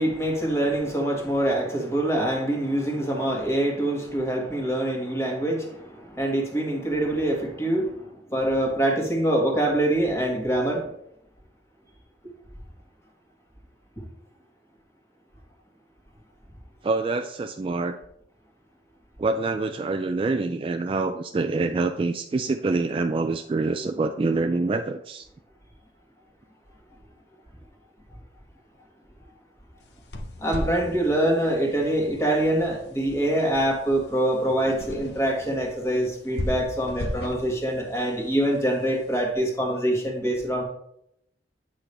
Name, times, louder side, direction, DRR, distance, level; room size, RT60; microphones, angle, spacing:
voice 1, 0.0-10.8 30.4-40.6, right 1 dB, 15° left, 0 dB, 1.6 m, -25 dB
voice 2, 16.8-18.0 19.2-25.3, right 3 dB, 30° right, 7 dB, 0.3 m, -26 dB
sound 1, 29.8-39.2, left 1 dB, 70° left, 0.8 m, -37 dB
8.4 x 5.9 x 3.3 m, 0.75 s
head